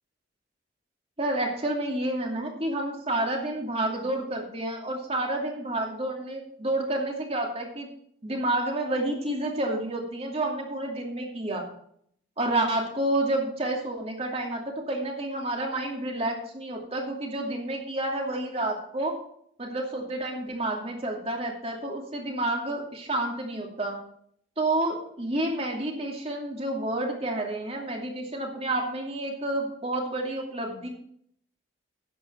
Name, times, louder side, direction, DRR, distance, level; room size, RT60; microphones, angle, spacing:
voice 1, 1.2-7.9 8.2-11.7 12.4-19.2 19.6-24.0 24.6-30.9, right 1 dB, 30° right, 1 dB, 2.6 m, -29 dB
11.5 x 8.9 x 4.5 m, 0.66 s
head